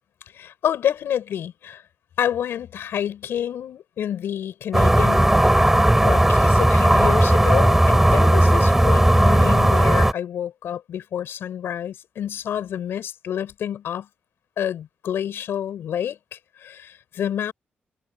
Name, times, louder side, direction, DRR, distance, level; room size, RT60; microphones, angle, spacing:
voice 1, 0.3-1.8 2.2-5.4 6.0-14.1 14.6-17.5, left 10 dB, 85° left, 6.7 m, -28 dB
sound 1, 4.7-10.1, right 1 dB, 10° right, 7.1 m, -16 dB
cardioid pair, 85°, 4 cm